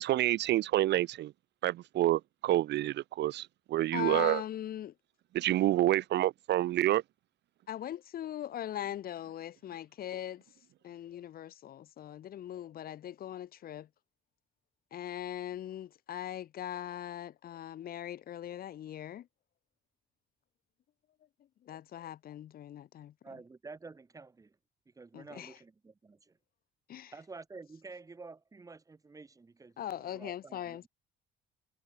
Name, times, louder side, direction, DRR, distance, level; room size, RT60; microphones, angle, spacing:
voice 1, 0.0-1.3 1.6-4.4 5.3-7.0, right 14 dB, 65° right, 0.9 m, -28 dB
voice 2, 3.9-4.9 7.7-10.4 10.8-13.9 14.9-19.3 21.6-23.1 25.1-25.6 26.9-27.1 29.8-30.9, left 11 dB, 50° left, 1.5 m, -40 dB
voice 3, 23.2-24.6 25.0-26.3 27.1-30.9, right 4 dB, 15° right, 3.9 m, -50 dB
cardioid pair, 160°, 19 cm